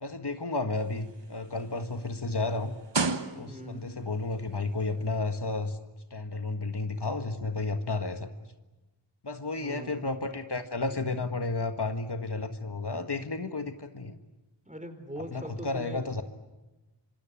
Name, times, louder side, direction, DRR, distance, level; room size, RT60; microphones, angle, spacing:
voice 1, 0.0-2.7 3.3-5.8 6.1-8.3 9.2-14.2 15.2-16.2, left 3 dB, 60° left, 7 dB, 1.7 m, -32 dB
sound 1, 0.8-3.9 4.8-4.9, right 4 dB, 70° right, 1.4 m, -34 dB
voice 2, 3.5-3.9 9.6-10.1 14.6-16.0, equal, 15° right, 7 dB, 4.7 m, -41 dB
26.5 x 25.0 x 8.6 m, 1.1 s
wide cardioid pair, 50°, 44 cm